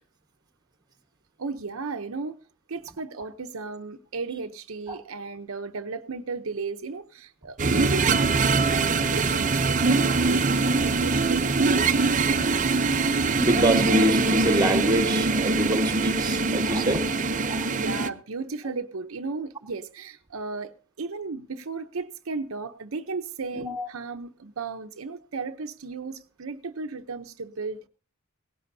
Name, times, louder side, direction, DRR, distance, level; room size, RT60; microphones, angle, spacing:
voice 1, 1.4-2.4 2.7-12.1 17.7-27.9, right 4 dB, 75° right, 0.8 m, -35 dB
sound 1, 7.6-18.1, right 3 dB, 40° right, 0.7 m, -23 dB
voice 2, 13.4-17.7 23.5-23.9, right 1 dB, 20° right, 1.4 m, -26 dB
18.0 x 16.5 x 2.7 m
head